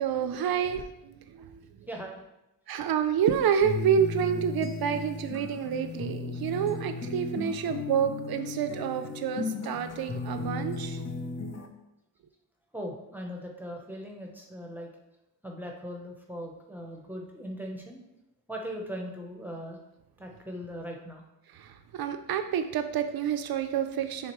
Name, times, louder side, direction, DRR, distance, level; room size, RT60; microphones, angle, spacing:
voice 1, 0.0-1.6 2.7-11.0 21.6-21.7 21.9-24.3, right 8 dB, 85° right, 8 dB, 0.5 m, -28 dB
voice 2, 1.9-2.2 12.7-14.9 15.4-18.0 18.5-19.8 20.2-21.2, equal, 5° right, 0 dB, 0.7 m, -39 dB
sound 1, 3.6-11.7, left 4 dB, 45° left, 0.7 m, -36 dB
9.3 x 3.6 x 3.0 m, 0.90 s
wide cardioid pair, 160°, 35 cm